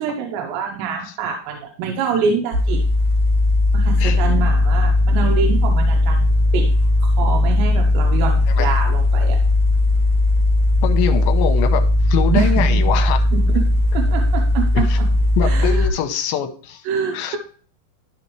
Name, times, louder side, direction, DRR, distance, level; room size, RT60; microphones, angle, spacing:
voice 1, 0.0-2.8 3.7-6.7 7.0-9.4 12.3-12.8 13.3-13.6 13.9-14.9 15.4-15.9 16.9-17.4, right 6 dB, 85° right, 2 dB, 3.1 m, -25 dB
sound 1, 2.5-15.9, left 2 dB, 70° right, 2.3 m, -17 dB
voice 2, 10.8-13.3 14.7-15.0 15.4-16.8 17.1-17.4, left 9 dB, 75° left, 6 dB, 2.5 m, -24 dB
13.0 x 4.3 x 3.1 m, 0.43 s
omnidirectional pair, 4.9 m